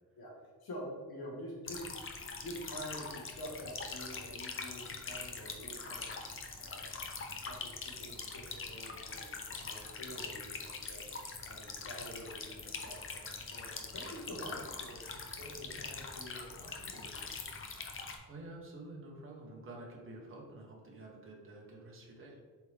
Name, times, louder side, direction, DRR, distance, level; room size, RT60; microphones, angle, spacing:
voice 1, 0.6-1.9 2.4-6.1 6.6-6.9 7.4-11.1 11.4-15.0 15.4-17.6, equal, 75° left, -3 dB, 1.7 m, -47 dB
sound 1, 1.6-18.2, left 4 dB, 35° left, 0.6 m, -43 dB
voice 2, 18.3-22.3, right 2 dB, 35° right, -2 dB, 1.1 m, -49 dB
7.7 x 3.6 x 3.4 m, 1.5 s
wide cardioid pair, 160°, 37 cm